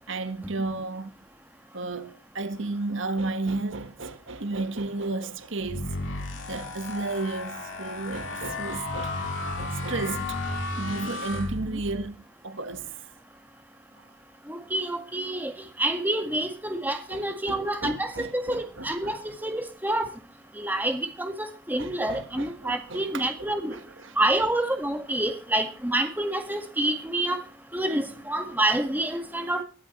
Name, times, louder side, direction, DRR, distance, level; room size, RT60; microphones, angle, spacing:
voice 1, 0.1-1.1 1.7-5.9 6.5-10.4 10.8-13.0 14.0-14.1 17.1-19.4 21.8-24.1, right 3 dB, 70° right, 1.5 m, -33 dB
sound 1, 5.6-12.1, left 2 dB, 80° left, 5.4 m, -33 dB
voice 2, 14.5-15.5 15.8-20.1 20.6-23.8 24.2-27.4 27.7-29.6, right 1 dB, 10° right, 1.8 m, -28 dB
22.0 x 12.5 x 3.2 m
head